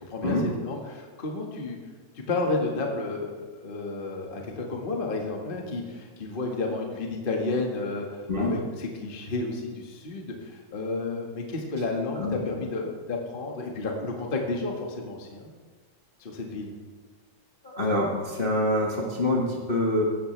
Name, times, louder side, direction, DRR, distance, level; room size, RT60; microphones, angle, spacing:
voice 1, 0.6-1.8 2.1-3.3 3.6-15.5 16.2-16.7, left 3 dB, 30° left, 0 dB, 1.0 m, -31 dB
voice 2, 12.1-12.6 17.6-20.0, left 1 dB, 70° left, -2 dB, 0.5 m, -26 dB
16.5 x 13.0 x 3.4 m, 1.4 s
omnidirectional pair, 3.9 m